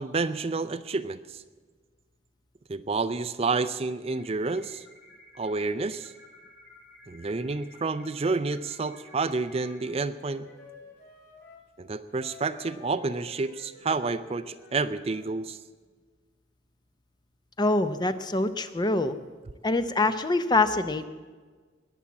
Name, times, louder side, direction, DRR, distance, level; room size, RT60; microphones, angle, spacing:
voice 1, 0.0-1.4 2.7-4.8 5.4-6.1 7.1-10.5 11.8-15.6, right 3 dB, 30° right, 12 dB, 0.5 m, -29 dB
sound 1, 4.1-9.9, left 1 dB, 75° left, 3.7 m, -54 dB
Wind instrument woodwind instrument, 8.6-11.6 12.1-15.4, left 3 dB, 55° left, 3.6 m, -51 dB
voice 2, 17.6-19.2 19.6-21.0, left 2 dB, 20° left, 10 dB, 0.6 m, -25 dB
20.0 x 7.3 x 8.4 m, 1.5 s
head